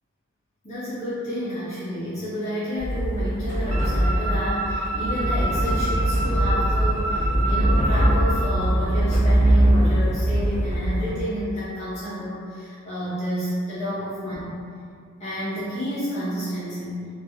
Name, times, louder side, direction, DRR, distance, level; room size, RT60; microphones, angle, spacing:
voice 1, 0.6-14.5 15.2-17.0, equal, 35° left, -12 dB, 0.6 m, -30 dB
sound 1, 2.8-11.1, right 1 dB, 35° right, 0.7 m, -22 dB
sound 2, 3.7-8.5, right 2 dB, 80° right, 0.4 m, -29 dB
2.7 x 2.3 x 2.7 m, 2.3 s
head